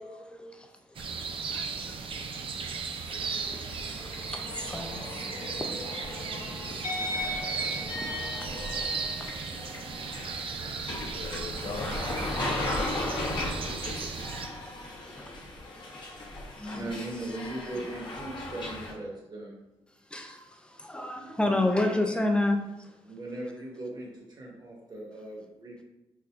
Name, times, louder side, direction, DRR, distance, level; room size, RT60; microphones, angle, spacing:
voice 1, 0.0-2.6 2.9-6.1 6.5-9.5 12.9-14.0 14.3-14.5 15.0-15.3 15.8-16.1 16.5-16.9 20.1-23.0, left 2 dB, 10° left, 0.5 m, -34 dB
sound 1, 0.9-14.5, right 5 dB, 55° right, 0.4 m, -36 dB
sound 2, 3.1-18.9, left 2 dB, 45° left, 1.1 m, -36 dB
voice 2, 10.1-10.8 11.1-12.3, left 4 dB, 70° left, 0.5 m, -43 dB
voice 3, 16.7-19.6 23.1-24.1 24.4-25.8, right 2 dB, 40° right, 1.3 m, -38 dB
5.7 x 2.2 x 2.5 m
cardioid pair, 75°, 11 cm